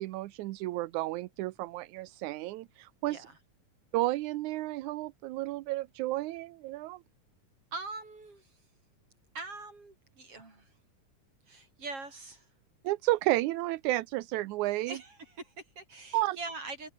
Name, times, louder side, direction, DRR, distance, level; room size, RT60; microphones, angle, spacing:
voice 1, 0.0-3.3 3.9-7.0 12.8-15.0 16.1-16.4, right 17 dB, 75° right, 1.9 m, -32 dB
voice 2, 3.1-3.4 7.7-8.6 9.3-10.8 11.5-12.5 14.8-16.9, right 3 dB, 40° right, 7.7 m, -43 dB
omnidirectional pair, 3.8 m